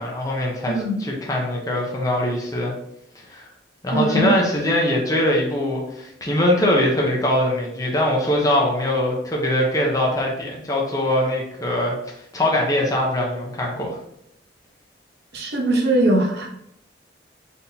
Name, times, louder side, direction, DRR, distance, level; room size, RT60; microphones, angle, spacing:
voice 1, 0.0-2.7 3.3-3.4 3.8-11.9 12.3-14.0, left 1 dB, 20° left, -2 dB, 0.8 m, -22 dB
voice 2, 0.7-1.0 3.9-4.3 15.3-16.5, right 1 dB, 65° right, 0 dB, 1.0 m, -20 dB
4.2 x 3.5 x 2.7 m, 0.75 s
head